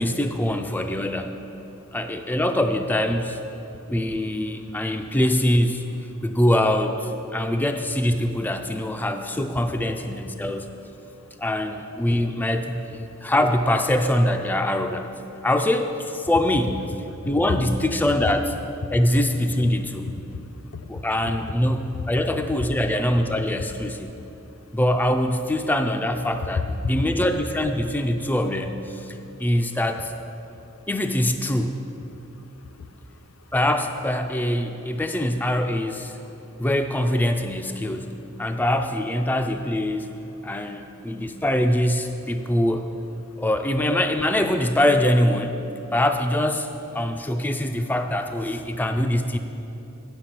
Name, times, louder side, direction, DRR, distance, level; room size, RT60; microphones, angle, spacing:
voice 1, 0.0-1.4 1.9-3.4 3.9-5.8 6.2-10.7 11.4-15.1 15.4-16.8 17.2-18.5 18.9-20.1 20.9-24.1 24.7-30.1 30.9-31.8 33.5-36.2 36.6-40.1 40.4-42.9 43.4-45.6 45.9-49.4, left 1 dB, 10° left, 5 dB, 0.4 m, -23 dB
voice 2, 20.7-21.0 21.9-22.1 29.4-29.5 30.5-30.6 32.5-33.2 36.1-36.6 40.4-40.8 41.2-41.4, left 4 dB, 75° left, 7 dB, 0.6 m, -40 dB
9.7 x 6.8 x 5.8 m, 2.8 s
head